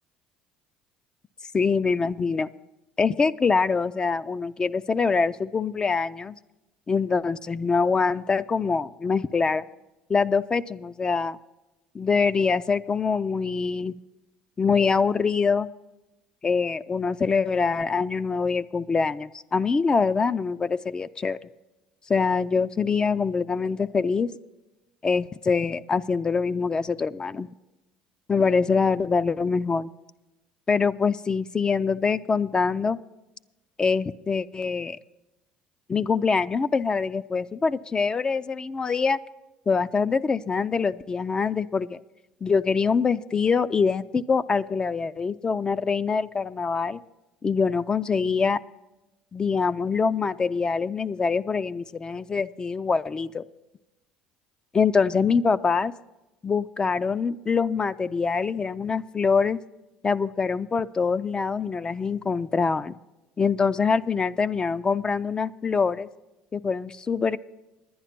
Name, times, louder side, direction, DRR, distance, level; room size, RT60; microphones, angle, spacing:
voice 1, 1.5-2.5 3.0-6.4 6.9-9.6 10.1-11.4 11.9-14.0 14.6-15.7 16.4-21.4 22.1-24.3 25.0-27.5 28.3-29.9 30.7-33.0 33.8-35.0 35.9-39.2 39.7-42.0 42.4-47.0 47.4-48.6 49.3-53.4 54.7-55.9 56.4-59.6 60.0-62.9 63.4-66.1 66.5-67.4, left 5 dB, 25° left, 13 dB, 0.3 m, -24 dB
10.5 x 10.0 x 5.9 m, 1.0 s
supercardioid pair, 85°, 3 cm